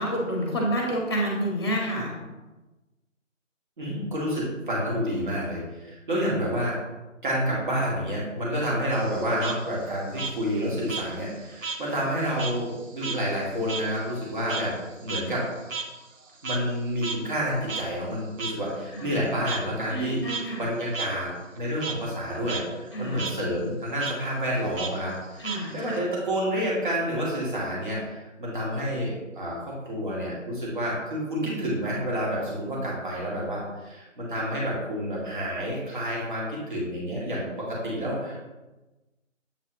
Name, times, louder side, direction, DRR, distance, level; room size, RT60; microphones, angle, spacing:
voice 1, 0.0-2.1 18.9-19.2 19.9-20.6 22.9-23.3 25.4-26.0, right 1 dB, 20° left, -1 dB, 1.0 m, -29 dB
voice 2, 3.8-6.8 7.2-14.8 15.0-15.5 16.4-38.4, equal, 40° right, -5 dB, 1.9 m, -29 dB
Frog, 8.9-11.8 12.1-16.8 17.0-17.2 17.7-17.8 18.4-18.5 19.4-19.6 20.1-20.4 20.9-21.1 21.4-21.9 22.3-22.6 22.9-23.3 24.0-24.1 24.8-26.0, right 4 dB, 70° right, 0.8 m, -34 dB
7.6 x 4.1 x 3.0 m, 1.1 s
figure-of-eight pair, 160°, 39 cm